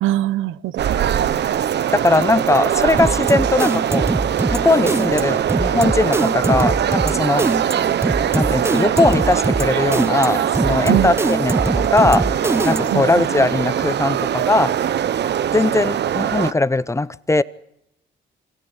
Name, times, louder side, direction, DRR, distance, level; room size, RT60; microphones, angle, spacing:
voice 1, 0.0-1.0 10.9-11.2 12.9-13.2, right 14 dB, 85° right, 16 dB, 0.9 m, -22 dB
sound 1, 0.8-16.5, right 10 dB, 60° right, 0.9 m, -21 dB
voice 2, 1.9-4.1 4.5-7.5 8.3-12.3 12.6-14.7 15.5-17.4, left 2 dB, 15° left, 17 dB, 0.8 m, -19 dB
sound 2, 3.0-13.1, right 2 dB, 10° right, 0.9 m, -23 dB
27.0 x 13.5 x 8.8 m, 0.79 s
cardioid pair, 90°, 20 cm